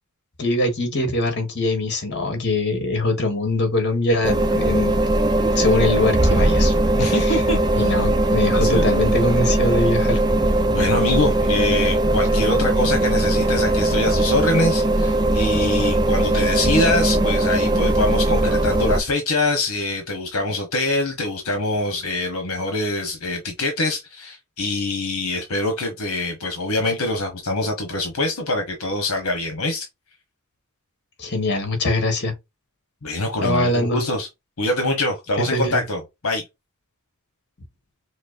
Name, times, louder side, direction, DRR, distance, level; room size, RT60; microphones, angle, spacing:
voice 1, 0.4-5.0 5.5-6.7 7.0-7.4 7.7-10.2 31.2-32.3 33.4-34.0 35.5-35.8, left 2 dB, 50° left, 1.6 m, -22 dB
sound 1, 4.2-19.0, right 1 dB, 20° right, 0.4 m, -19 dB
voice 2, 7.0-8.0 8.5-8.9 10.7-29.9 33.0-34.3 34.6-36.4, left 2 dB, 75° left, 1.1 m, -24 dB
5.9 x 2.1 x 2.6 m
head